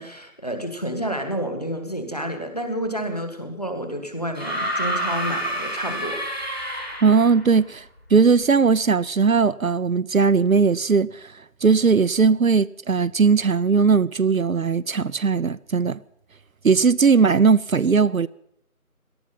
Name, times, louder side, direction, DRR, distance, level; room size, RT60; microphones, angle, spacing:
voice 1, 0.0-6.2, equal, 25° left, 1.6 m, -29 dB
sound 1, 4.3-7.4 8.7-8.8, right 1 dB, 45° left, 3.0 m, -28 dB
voice 2, 7.0-7.8 8.1-11.2 11.6-16.0 16.6-18.3, right 5 dB, 65° right, 0.6 m, -18 dB
18.0 x 13.0 x 5.7 m
figure-of-eight pair, 175°, 44 cm